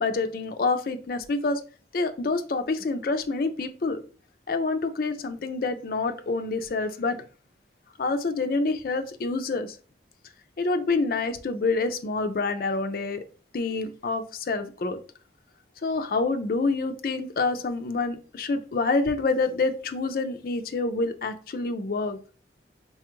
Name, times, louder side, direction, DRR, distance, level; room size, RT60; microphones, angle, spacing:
voice 1, 0.0-1.6 1.9-4.0 4.5-7.2 8.0-9.7 10.6-13.2 13.5-15.0 15.8-22.2, left 3 dB, 55° left, 0.4 m, -27 dB
4.1 x 2.3 x 2.9 m
head